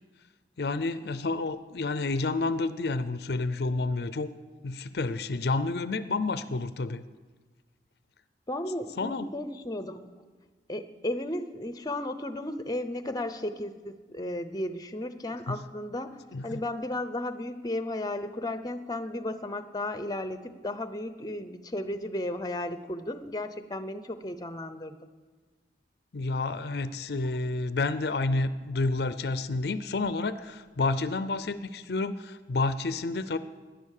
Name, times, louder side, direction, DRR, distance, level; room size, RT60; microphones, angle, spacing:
voice 1, 0.6-4.3 4.6-7.0 9.0-9.3 15.5-15.6 16.3-16.6 26.1-33.4, left 3 dB, 60° left, 13 dB, 0.5 m, -30 dB
voice 2, 8.5-10.1 10.7-25.0, left 1 dB, 20° left, 11 dB, 0.7 m, -34 dB
18.0 x 10.5 x 6.6 m, 1.3 s
head